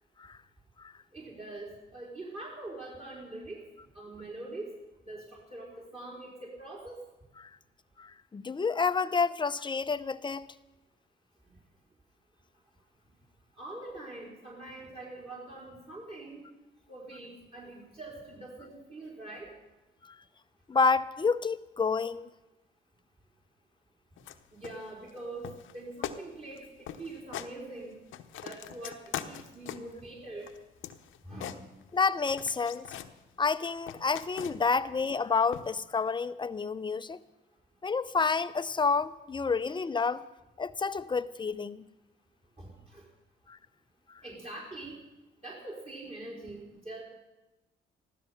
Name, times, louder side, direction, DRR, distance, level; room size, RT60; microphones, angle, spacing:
voice 1, 1.1-3.7 3.9-4.8 5.1-7.0 13.6-16.4 16.9-19.5 24.5-25.5 25.7-28.0 28.4-30.5 31.3-31.6 42.6-43.0 44.2-45.0 45.4-47.0, right 2 dB, 30° right, -4 dB, 4.4 m, -43 dB
voice 2, 8.0-10.5 20.0-20.1 20.7-22.3 31.9-32.9 33.4-37.2 37.8-40.2 40.6-41.8 43.5-43.6, left 4 dB, 25° left, 14 dB, 0.6 m, -29 dB
sound 1, 24.2-24.4 24.6-25.2 25.4-25.8 26.0-26.2 26.5-26.6 26.9-27.5 27.9-30.0 30.4-32.1 32.4-33.1 33.5-34.8 35.5-35.8, left 10 dB, 75° left, 0.9 m, -41 dB
15.0 x 13.0 x 5.8 m, 1.0 s
cardioid pair, 80°, 20 cm